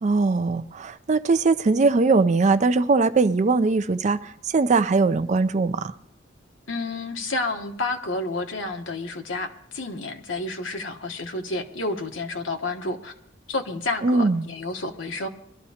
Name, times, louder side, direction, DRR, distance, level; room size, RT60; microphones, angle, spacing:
voice 1, 0.0-5.9 14.0-14.5, right 3 dB, 35° right, 0.4 m, -21 dB
voice 2, 6.7-13.1 13.5-15.3, left 2 dB, 75° left, 1.1 m, -30 dB
22.0 x 12.5 x 2.8 m
head